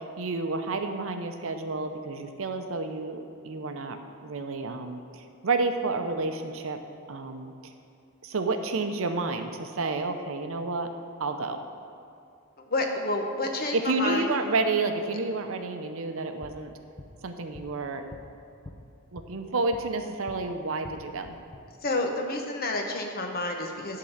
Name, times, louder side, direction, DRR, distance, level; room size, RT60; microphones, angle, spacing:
voice 1, 0.0-4.0 4.2-6.8 7.1-7.5 8.2-10.9 11.2-11.6 13.7-16.7 17.2-18.0 19.1-21.4, right 3 dB, 65° right, 6 dB, 0.7 m, -30 dB
voice 2, 12.6-14.3 21.8-24.0, left 2 dB, 45° left, 3 dB, 1.0 m, -29 dB
sound 1, 16.4-20.4 20.7-21.6, left 1 dB, 25° left, 0.7 m, -48 dB
11.5 x 3.8 x 7.1 m, 2.6 s
head